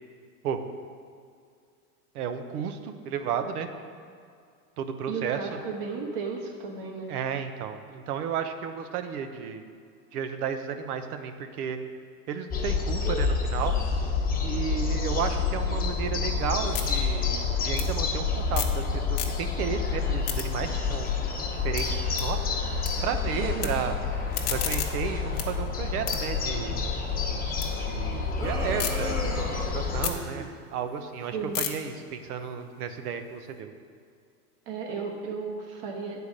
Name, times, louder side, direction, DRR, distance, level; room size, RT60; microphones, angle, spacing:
voice 1, 2.1-3.7 4.8-5.6 7.1-9.6 10.1-11.8 12.3-13.7 14.4-21.1 21.5-22.6 23.0-23.9 24.5-26.8 27.8-33.7, right 7 dB, 75° right, 7 dB, 1.0 m, -33 dB
voice 2, 5.1-7.1 23.4-23.8 31.3-31.6 34.7-36.3, right 5 dB, 45° right, 0 dB, 1.4 m, -34 dB
sound 1, 12.5-30.1, left 5 dB, 20° left, 1.0 m, -28 dB
sound 2, 15.9-18.8 19.1-19.7 20.0-22.9 23.2-23.7 24.1-27.7 28.1-28.9 29.4-33.5, left 9 dB, 45° left, 1.0 m, -37 dB
sound 3, 28.4-30.5, right 1 dB, 5° right, 0.3 m, -35 dB
8.4 x 4.6 x 6.5 m, 2.2 s
supercardioid pair, 130°, 45 cm